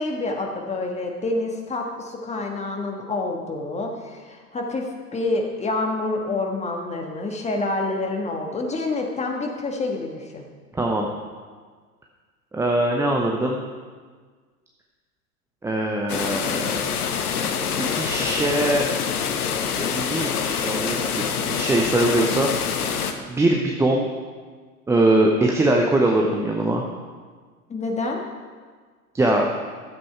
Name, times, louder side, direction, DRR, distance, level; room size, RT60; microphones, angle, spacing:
voice 1, 0.0-10.5 27.7-28.2, left 2 dB, 15° left, 1 dB, 1.5 m, -27 dB
voice 2, 10.7-11.1 12.5-13.6 15.6-16.8 17.9-18.8 19.8-22.5 23.3-24.1 24.9-26.8 29.1-29.5, right 1 dB, 5° right, 0 dB, 0.6 m, -22 dB
sound 1, 16.1-23.1, left 7 dB, 70° left, 1.0 m, -26 dB
12.0 x 7.7 x 4.5 m, 1.5 s
figure-of-eight pair, 90°, 47 cm